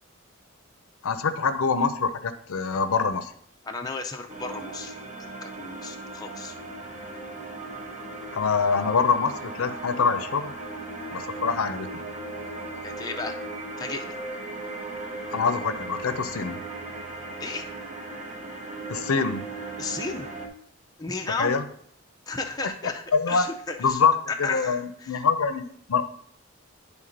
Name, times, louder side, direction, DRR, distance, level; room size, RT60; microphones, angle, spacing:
voice 1, 1.0-3.3 8.3-10.5 11.1-12.0 15.3-16.6 18.9-19.4 21.4-21.6 23.1-23.4 23.8-24.1 24.4-26.0, left 5 dB, 80° left, 10 dB, 0.6 m, -25 dB
voice 2, 3.6-6.5 12.8-13.4 13.8-14.2 17.4-17.7 19.8-20.3 21.0-21.6 22.3-24.0 24.4-25.3, left 3 dB, 20° left, 2 dB, 0.4 m, -34 dB
sound 1, 4.3-20.5, right 2 dB, 35° right, 0.8 m, -37 dB
10.0 x 3.6 x 3.8 m, 0.64 s
head